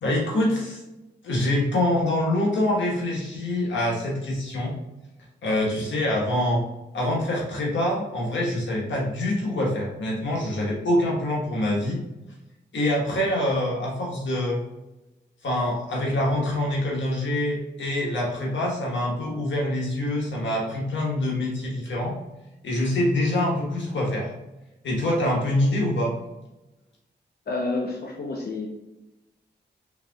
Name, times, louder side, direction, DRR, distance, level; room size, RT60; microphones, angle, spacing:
voice 1, 0.0-0.8 1.2-4.7 5.4-6.6 6.9-12.0 12.7-14.6 15.4-22.2 22.6-24.3 24.8-26.1, left 1 dB, 85° left, -3 dB, 1.4 m, -25 dB
voice 2, 27.5-28.7, left 3 dB, 55° left, 0 dB, 0.8 m, -29 dB
4.7 x 3.8 x 2.3 m, 0.99 s
cardioid pair, 55°, 19 cm